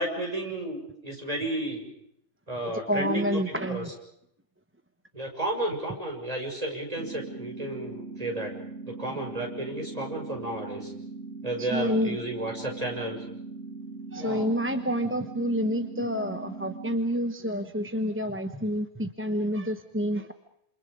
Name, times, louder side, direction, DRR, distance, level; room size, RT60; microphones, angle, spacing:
voice 1, 0.0-1.9 2.5-3.8 5.1-8.5 8.9-10.9 11.4-13.2 14.2-14.5, right 1 dB, 30° right, 1 dB, 6.4 m, -32 dB
voice 2, 2.6-3.9 11.6-12.2 14.1-20.3, equal, 10° right, 7 dB, 1.0 m, -28 dB
sound 1, 7.0-17.0, right 3 dB, 75° right, 2.7 m, -40 dB
28.5 x 28.0 x 5.2 m, 0.74 s
omnidirectional pair, 1.4 m